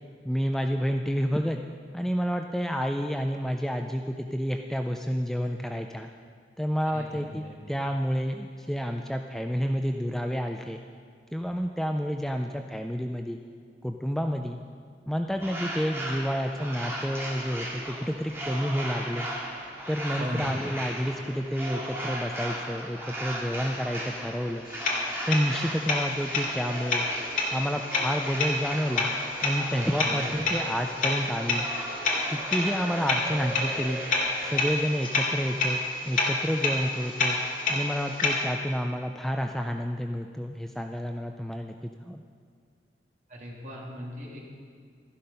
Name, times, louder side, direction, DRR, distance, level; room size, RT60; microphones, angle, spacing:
voice 1, 0.2-1.6 1.9-6.1 6.6-10.8 11.3-13.4 13.8-14.6 15.1-19.3 19.9-24.7 25.2-27.1 27.5-29.1 29.4-31.7 32.3-34.0 34.4-35.8 36.1-37.4 37.7-41.7 42.0-42.2, equal, ahead, 4 dB, 0.4 m, -29 dB
voice 2, 6.8-7.6 20.2-20.5 30.0-30.3 43.3-44.5, left 1 dB, 45° right, -3 dB, 2.7 m, -38 dB
sound 1, 15.4-34.7, right 1 dB, 15° right, 2.0 m, -37 dB
sound 2, 24.7-38.4, left 2 dB, 50° left, 2.1 m, -29 dB
13.0 x 11.5 x 5.5 m, 2.1 s
head